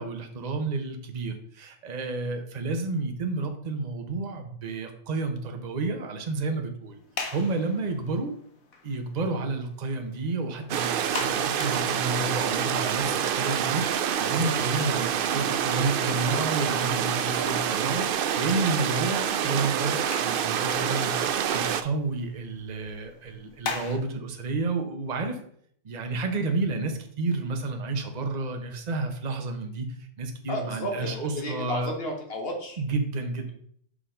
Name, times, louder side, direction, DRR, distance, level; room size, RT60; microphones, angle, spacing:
voice 1, 0.0-7.0 7.3-8.3 8.8-18.0 18.4-21.2 21.5-25.4 25.8-31.9 32.8-33.5, right 3 dB, 35° right, 5 dB, 0.9 m, -30 dB
sound 1, 6.9-24.0, left 4 dB, 90° left, 1.6 m, -43 dB
sound 2, 10.7-21.8, right 8 dB, 65° right, 0.5 m, -27 dB
voice 2, 30.5-32.8, equal, 45° left, 2 dB, 1.6 m, -32 dB
5.7 x 5.1 x 5.0 m, 0.64 s
omnidirectional pair, 1.4 m